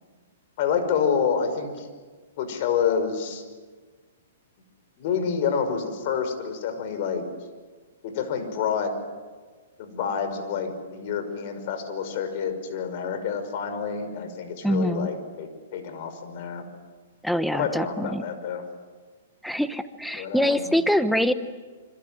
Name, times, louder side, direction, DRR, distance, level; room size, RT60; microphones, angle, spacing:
voice 1, 0.6-1.9 2.4-3.4 5.0-7.2 8.0-8.9 9.8-16.6 17.5-18.6 20.2-20.7, left 6 dB, 50° left, 8 dB, 5.6 m, -28 dB
voice 2, 14.6-15.1 17.2-18.2 19.4-21.3, equal, ahead, 11 dB, 1.0 m, -24 dB
26.5 x 26.0 x 7.7 m, 1.4 s
hypercardioid pair, 140°, 0 cm